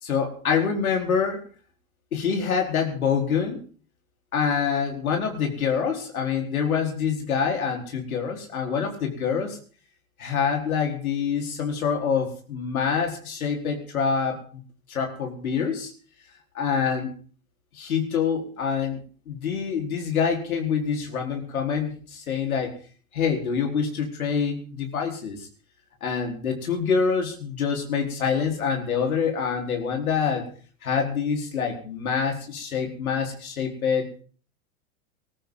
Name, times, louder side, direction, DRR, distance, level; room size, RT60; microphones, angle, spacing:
voice 1, 0.0-1.4 2.1-3.6 4.3-9.6 10.2-14.6 14.9-15.9 16.5-17.1 17.7-19.0 19.3-22.7 23.1-25.5 26.0-30.5 30.8-34.2, left 6 dB, 80° left, 2 dB, 4.7 m, -26 dB
20.0 x 14.0 x 4.1 m, 0.40 s
hypercardioid pair, 100°, 42 cm